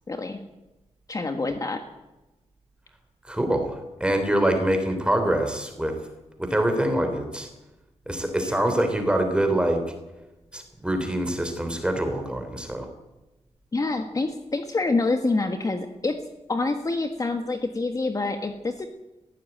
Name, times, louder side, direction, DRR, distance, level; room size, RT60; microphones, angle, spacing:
voice 1, 0.1-0.4 1.1-1.8 8.4-8.5 13.7-16.2 16.5-18.9, left 3 dB, 30° left, 6 dB, 1.5 m, -26 dB
voice 2, 3.3-3.7 4.0-5.9 6.4-7.5 8.1-9.8 10.5-12.9, right 1 dB, 10° right, 6 dB, 3.4 m, -24 dB
20.0 x 15.5 x 9.2 m, 1.0 s
wide cardioid pair, 130°, 12 cm